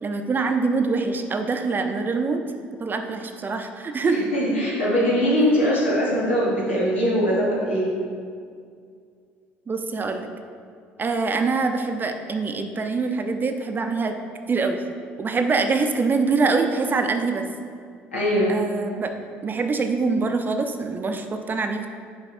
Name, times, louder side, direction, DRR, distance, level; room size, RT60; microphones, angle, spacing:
voice 1, 0.0-2.4 2.8-4.2 9.7-10.3 11.0-14.2 14.5-14.8 15.2-17.4 18.5-19.1 19.4-21.9, right 4 dB, 30° right, 6 dB, 0.6 m, -24 dB
voice 2, 4.0-7.9 18.1-18.6, equal, 85° left, -6 dB, 1.6 m, -21 dB
6.9 x 4.9 x 4.4 m, 2.2 s
hypercardioid pair, 60°, 6 cm